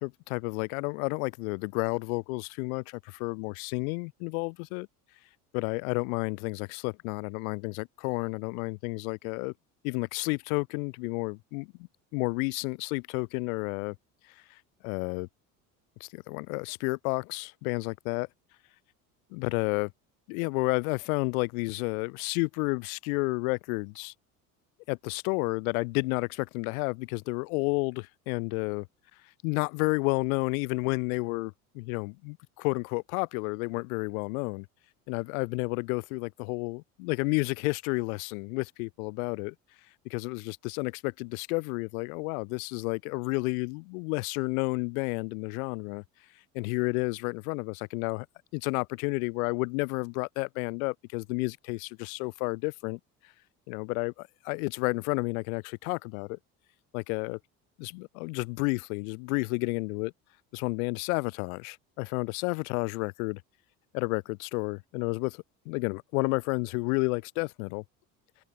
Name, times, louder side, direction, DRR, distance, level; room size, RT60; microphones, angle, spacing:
voice 1, 0.0-4.9 5.5-9.5 9.8-11.7 12.1-14.0 14.8-15.3 16.0-18.3 19.3-19.9 20.3-24.1 24.9-28.9 29.4-34.7 35.1-39.5 40.0-46.0 46.5-48.3 48.5-53.0 53.7-56.4 56.9-57.4 57.8-60.1 60.5-63.4 63.9-67.8, left 30 dB, 65° left, 0.6 m, -31 dB
open air
hypercardioid pair, 65°, 45 cm